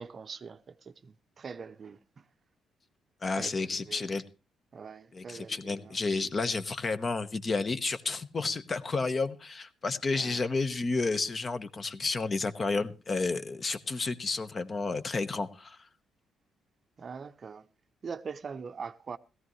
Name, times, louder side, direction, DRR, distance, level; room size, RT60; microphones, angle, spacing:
voice 1, 0.0-2.3 3.3-4.1 4.7-6.3 10.1-10.4 17.0-17.7 18.0-19.2, right 5 dB, 45° right, 0.6 m, -43 dB
voice 2, 3.2-4.2 5.1-15.8, left 3 dB, 35° left, 1.0 m, -31 dB
17.0 x 14.0 x 3.1 m
cardioid pair, 90°, 0 cm